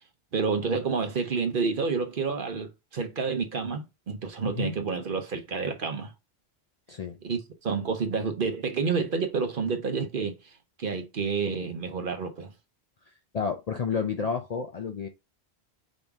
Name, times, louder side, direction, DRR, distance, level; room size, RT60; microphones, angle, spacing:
voice 1, 0.3-6.1 7.2-10.4 10.8-12.5, right 5 dB, 55° right, 1.0 m, -29 dB
voice 2, 6.9-7.2 13.3-15.1, left 6 dB, 50° left, 0.5 m, -30 dB
5.2 x 2.8 x 3.5 m
omnidirectional pair, 1.1 m